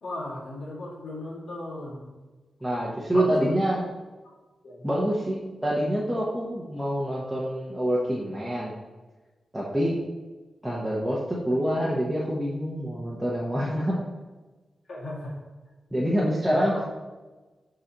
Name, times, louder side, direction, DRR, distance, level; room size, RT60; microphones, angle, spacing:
voice 1, 0.0-2.2 3.1-3.5 4.6-4.8 14.9-15.4 16.5-16.8, left 1 dB, 70° left, -5 dB, 1.9 m, -35 dB
voice 2, 2.6-3.8 4.8-8.7 9.5-10.0 10.6-14.0 15.9-16.7, equal, 5° right, -7 dB, 0.8 m, -26 dB
11.0 x 3.9 x 2.9 m, 1.2 s
wide cardioid pair, 165°, 0 cm